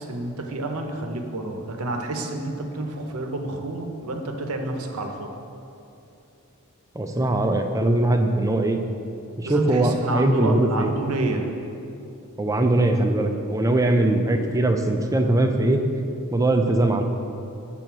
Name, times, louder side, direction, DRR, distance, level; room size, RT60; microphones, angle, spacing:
voice 1, 0.0-5.4 9.4-11.5, right 2 dB, 85° right, 4 dB, 0.7 m, -29 dB
voice 2, 6.9-8.8 9.4-10.9 12.4-15.8 16.3-17.0, right 2 dB, 15° right, 5 dB, 0.4 m, -21 dB
7.6 x 3.8 x 5.9 m, 2.7 s
head